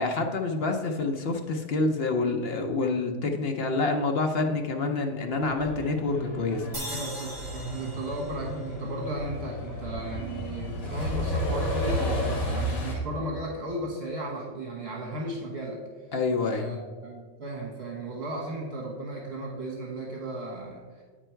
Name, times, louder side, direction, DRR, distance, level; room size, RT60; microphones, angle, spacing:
voice 1, 0.0-6.7 16.1-16.8, left 3 dB, 55° left, 3 dB, 0.8 m, -27 dB
Truck, 5.4-13.0, equal, 85° left, 2.0 m, -32 dB
sound 1, 6.7-10.0, right 1 dB, 15° right, 1.7 m, -41 dB
voice 2, 6.9-15.8 16.4-21.0, right 1 dB, 50° right, -1 dB, 1.3 m, -35 dB
9.1 x 4.5 x 4.4 m, 1.5 s
omnidirectional pair, 1.4 m